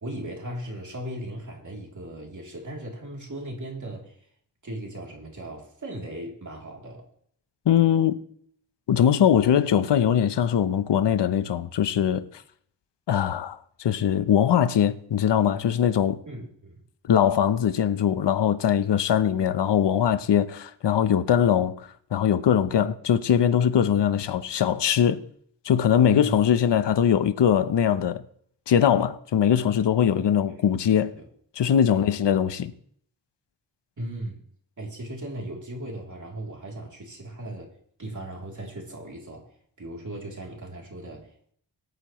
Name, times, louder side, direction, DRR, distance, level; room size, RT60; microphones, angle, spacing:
voice 1, 0.0-4.3 4.6-7.1 16.3-16.8 22.7-22.8 26.1-26.3 30.2-30.6 31.1-31.3 31.9-32.1 34.0-34.4 34.8-37.7 38.0-39.5 39.8-41.5, right 1 dB, 40° right, 3.1 m, -37 dB
voice 2, 7.7-8.2 8.9-12.4 13.1-16.2 17.0-25.2 25.6-28.2 28.7-31.2 31.6-32.7, left 9 dB, 70° left, 0.8 m, -21 dB
24.0 x 9.3 x 3.1 m
wide cardioid pair, 105°, 44 cm